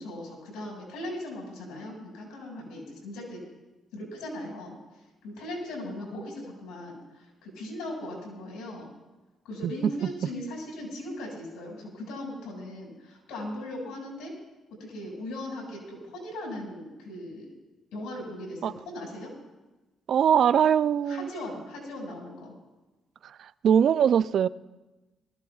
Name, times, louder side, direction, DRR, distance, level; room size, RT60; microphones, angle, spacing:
voice 1, 0.0-3.4 3.9-4.7 5.2-8.9 9.4-14.3 14.9-17.5 17.9-19.3 21.1-22.5, left 1 dB, 85° left, 5.6 m, -38 dB
voice 2, 20.1-21.3 23.6-24.5, right 8 dB, 65° right, 0.3 m, -21 dB
22.0 x 14.5 x 2.4 m
cardioid pair, 90°, 0 cm